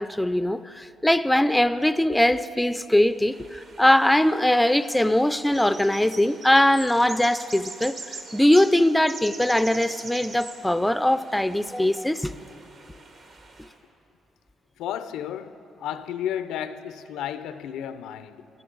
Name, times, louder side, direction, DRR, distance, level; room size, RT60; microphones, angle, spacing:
voice 1, 0.0-8.0 8.3-12.3, left 1 dB, 5° left, 0.4 m, -21 dB
sound 1, 3.2-13.7, right 3 dB, 60° right, 1.5 m, -43 dB
voice 2, 14.8-18.5, left 10 dB, 90° left, 0.4 m, -33 dB
18.0 x 12.0 x 3.9 m
cardioid pair, 90°, 0 cm